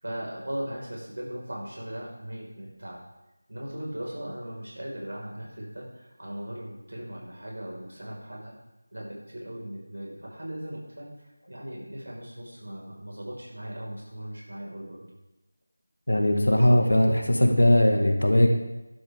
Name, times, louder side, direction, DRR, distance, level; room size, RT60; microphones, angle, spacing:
voice 1, 0.0-3.0 3.5-8.5 8.9-15.0, right 1 dB, 65° right, -3 dB, 5.0 m, -38 dB
voice 2, 16.1-18.5, left 1 dB, 70° left, 3 dB, 1.9 m, -20 dB
12.5 x 11.5 x 3.7 m, 0.98 s
figure-of-eight pair, 165°, 0 cm